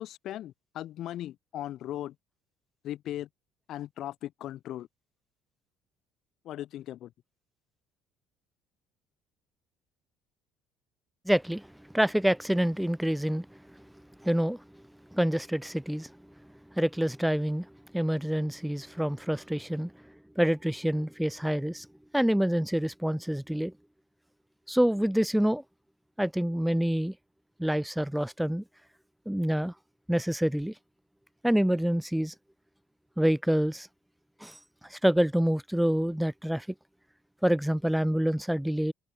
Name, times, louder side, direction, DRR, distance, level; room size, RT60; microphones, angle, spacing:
voice 1, 0.0-2.2 2.8-3.3 3.7-4.9 6.4-7.1, left 13 dB, 60° left, 1.8 m, -38 dB
voice 2, 11.3-11.7 11.9-13.6 14.2-14.6 15.1-16.1 16.7-17.7 17.9-19.9 20.4-21.9 22.1-23.7 24.7-25.6 26.2-27.1 27.6-28.6 29.3-29.7 30.1-30.7 31.4-32.3 33.2-33.9 34.4-36.7 37.4-38.9, equal, 5° right, 0.4 m, -27 dB
open air
supercardioid pair, 85°, 0 cm